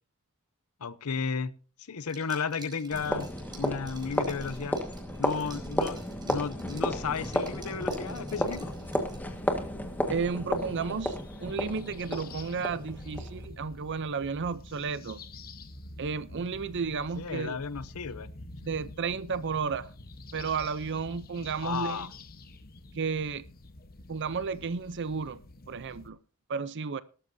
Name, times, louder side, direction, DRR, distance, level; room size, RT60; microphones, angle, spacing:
voice 1, 0.8-1.5 1.9-3.3 3.5-4.8 5.2-8.7 17.2-18.3 21.6-22.1, left 5 dB, 90° left, 0.7 m, -33 dB
Liquid, 2.0-9.4, right 4 dB, 20° right, 4.2 m, -52 dB
sound 1, 2.9-13.5, left 1 dB, 10° left, 1.6 m, -33 dB
sound 2, 8.4-26.1, left 2 dB, 45° left, 1.1 m, -47 dB
voice 2, 10.1-15.2 16.0-17.6 18.6-19.9 20.3-22.1 22.9-23.4 24.1-25.4 25.7-26.2 26.5-27.0, right 5 dB, 55° right, 0.6 m, -32 dB
18.5 x 12.5 x 2.7 m
head